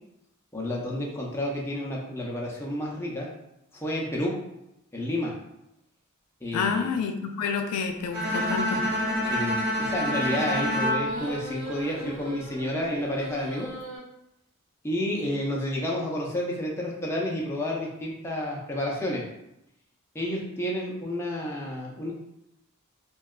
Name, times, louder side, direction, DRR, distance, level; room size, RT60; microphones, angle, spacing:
voice 1, 0.5-3.3 3.7-4.3 4.9-5.3 6.4-6.9 9.3-9.5 9.8-13.7 14.8-19.2 20.1-22.1, left 1 dB, 10° left, -3 dB, 0.4 m, -30 dB
voice 2, 6.5-8.9, left 5 dB, 85° left, 4 dB, 0.3 m, -28 dB
Bowed string instrument, 8.1-12.3, equal, 65° right, 0.7 m, -28 dB
sound 1, 10.9-14.0, right 1 dB, 90° right, 1.2 m, -39 dB
2.7 x 2.3 x 2.3 m, 0.84 s
head